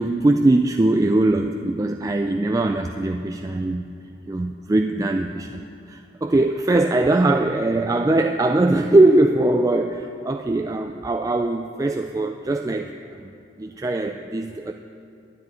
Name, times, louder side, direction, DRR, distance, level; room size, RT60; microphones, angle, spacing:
voice 1, 0.0-3.8 4.3-12.9 13.2-13.3 13.6-14.7, right 2 dB, 20° right, 4 dB, 0.3 m, -21 dB
9.9 x 8.0 x 9.7 m, 2.5 s
head